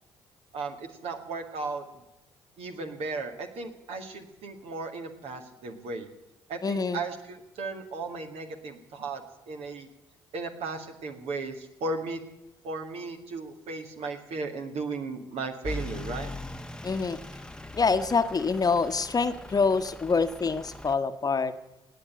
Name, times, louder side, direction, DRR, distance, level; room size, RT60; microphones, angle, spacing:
voice 1, 1.0-1.8 2.6-6.1 6.5-9.9 10.3-12.2 12.6-16.3, right 3 dB, 60° right, 4 dB, 2.1 m, -35 dB
voice 2, 6.6-7.0 16.8-17.2 17.7-21.5, left 4 dB, 35° left, 10 dB, 1.2 m, -26 dB
Truck / Idling, 15.6-21.0, left 1 dB, 5° left, 1.1 m, -40 dB
18.5 x 8.8 x 8.9 m, 0.94 s
hypercardioid pair, 45°, 12 cm